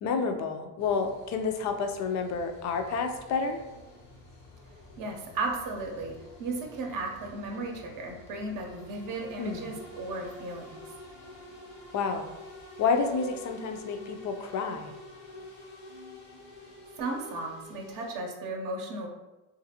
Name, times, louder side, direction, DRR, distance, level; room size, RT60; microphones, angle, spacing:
voice 1, 0.0-3.6 9.4-9.7 11.9-12.3 12.8-14.9, left 5 dB, 45° left, 5 dB, 0.4 m, -29 dB
sound 1, 0.8-18.2, left 1 dB, 90° left, 1.0 m, -48 dB
voice 2, 5.0-10.8 17.0-19.1, right 2 dB, 55° right, 1 dB, 0.7 m, -35 dB
2.5 x 2.5 x 2.7 m, 1.0 s
cardioid pair, 110°, 39 cm